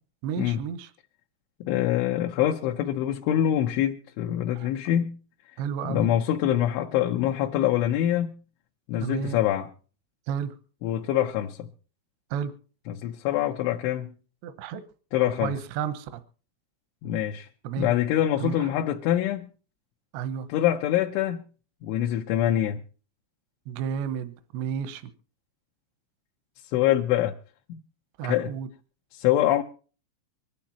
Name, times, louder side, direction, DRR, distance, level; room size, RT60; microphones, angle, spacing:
voice 1, 0.2-0.9 4.6-4.7 5.6-6.1 9.0-9.4 10.3-10.5 12.3-12.5 14.4-14.8 15.4-16.2 17.6-17.9 18.4-18.5 20.1-20.5 23.7-25.0 28.2-28.7, right 8 dB, 80° right, 2.6 m, -31 dB
voice 2, 1.6-5.2 5.8-8.3 8.9-9.7 10.8-11.7 12.9-14.1 15.1-15.6 17.0-17.5 17.8-19.5 20.5-21.4 21.8-22.8 26.6-27.3 27.7-27.8 28.2-28.5 29.1-29.6, left 12 dB, 80° left, 2.9 m, -25 dB
24.5 x 11.5 x 2.8 m
omnidirectional pair, 6.0 m